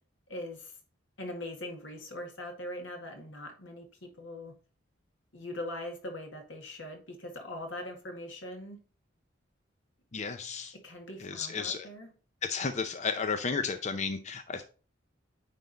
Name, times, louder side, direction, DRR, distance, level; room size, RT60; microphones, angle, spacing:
voice 1, 0.3-0.8 1.2-4.5 5.3-8.8 10.8-12.1, left 1 dB, 85° left, 2.0 m, -41 dB
voice 2, 10.1-10.7 11.2-11.9 12.4-14.6, left 5 dB, 40° left, 0.6 m, -33 dB
9.3 x 3.7 x 4.0 m
head